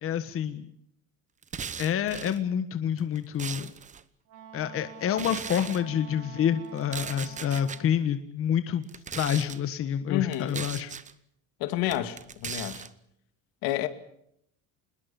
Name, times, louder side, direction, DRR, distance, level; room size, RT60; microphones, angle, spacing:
voice 1, 0.0-0.7 1.8-3.7 4.5-8.8 9.1-10.9, left 9 dB, 35° left, 1.4 m, -28 dB
sound 1, 1.4-2.4 3.0-4.0 5.1-5.8 6.8-7.8 8.8-9.6 10.3-11.1 11.9-12.9, right 7 dB, 20° right, 0.9 m, -38 dB
Wind instrument woodwind instrument, 4.3-8.0, right 6 dB, 55° right, 3.6 m, -47 dB
voice 2, 10.1-10.6 11.6-12.9 13.6-13.9, left 13 dB, 70° left, 2.5 m, -29 dB
26.5 x 21.0 x 7.1 m
cardioid pair, 160°, 37 cm